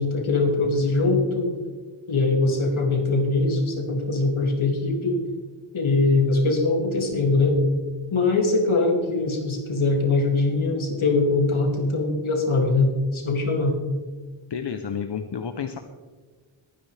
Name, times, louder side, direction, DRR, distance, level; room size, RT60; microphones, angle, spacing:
voice 1, 0.0-1.5 2.1-5.2 5.7-7.6 8.1-13.7, left 3 dB, 75° left, 0 dB, 2.7 m, -22 dB
voice 2, 14.5-15.8, left 7 dB, 60° left, 7 dB, 0.8 m, -30 dB
22.0 x 10.0 x 3.4 m, 1.4 s
wide cardioid pair, 105°, 48 cm